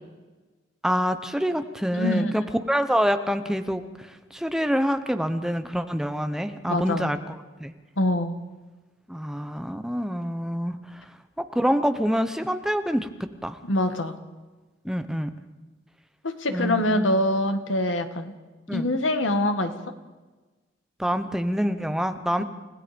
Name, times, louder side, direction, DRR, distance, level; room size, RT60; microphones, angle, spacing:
voice 1, 0.8-7.2 7.6-7.7 9.1-11.0 11.4-13.1 13.4-13.6 14.8-15.3 16.5-17.1 18.7-18.9 21.0-22.4, equal, 5° right, 9 dB, 1.0 m, -26 dB
voice 2, 1.9-2.3 6.7-7.1 8.0-8.4 13.6-14.1 16.2-18.3 18.7-19.7, left 1 dB, 90° left, 7 dB, 2.0 m, -24 dB
30.0 x 17.0 x 5.3 m, 1.2 s
head